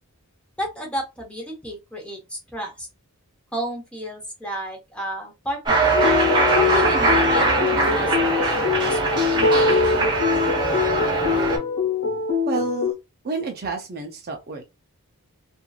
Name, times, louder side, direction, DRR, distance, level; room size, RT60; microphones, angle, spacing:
voice 1, 0.6-2.9 3.5-5.8 6.5-9.9, equal, 5° left, 1.1 m, -32 dB
Cheering, 5.7-11.6, right 3 dB, 20° right, 1.0 m, -21 dB
sound 1, 5.9-12.9, left 5 dB, 85° left, 0.9 m, -23 dB
voice 2, 12.5-12.9 13.2-14.7, right 4 dB, 45° right, 0.6 m, -29 dB
3.0 x 2.5 x 2.4 m
head